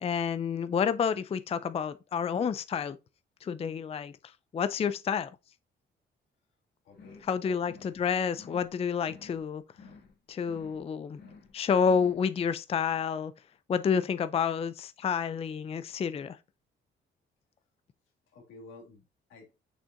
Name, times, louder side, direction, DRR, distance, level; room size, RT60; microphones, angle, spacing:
voice 1, 0.0-3.0 3.4-4.1 4.5-5.3 7.3-9.6 10.3-11.2 11.5-13.3 13.7-16.4, left 6 dB, 30° left, 0.4 m, -29 dB
voice 2, 6.8-7.6 18.3-19.6, left 3 dB, 85° left, 2.2 m, -52 dB
sound 1, 6.9-7.3 7.6-8.0 8.3-8.7 9.0-9.4 9.7-10.1 10.4-10.8 11.1-11.5 11.8-12.2, left 4 dB, 55° left, 2.0 m, -52 dB
6.4 x 6.2 x 2.6 m
cardioid pair, 90°, 20 cm